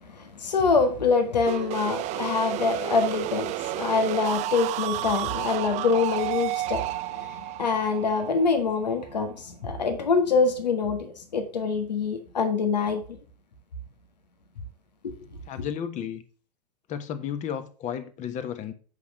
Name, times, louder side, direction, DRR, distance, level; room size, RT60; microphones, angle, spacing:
voice 1, 0.0-13.0 15.0-15.1, left 4 dB, 80° left, 1.6 m, -25 dB
sound 1, 1.5-9.2, right 17 dB, 35° right, 0.5 m, -31 dB
voice 2, 15.5-16.2 16.9-18.7, left 8 dB, 35° left, 1.4 m, -33 dB
8.2 x 5.9 x 6.0 m
figure-of-eight pair, 95°, 21 cm